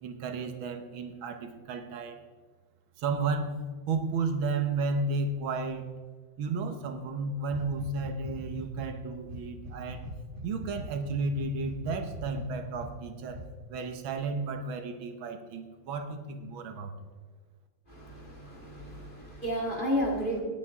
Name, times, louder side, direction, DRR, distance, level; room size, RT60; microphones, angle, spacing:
voice 1, 0.0-2.2 3.0-5.9 6.4-10.1 10.4-13.4 13.7-16.9, right 3 dB, 80° right, 7 dB, 1.8 m, -33 dB
sound 1, 7.5-8.9 9.2-12.9 13.3-13.5, equal, 30° right, 1.1 m, -41 dB
voice 2, 17.9-20.4, equal, 25° left, -2 dB, 2.2 m, -32 dB
18.5 x 8.9 x 3.6 m, 1.5 s
omnidirectional pair, 2.2 m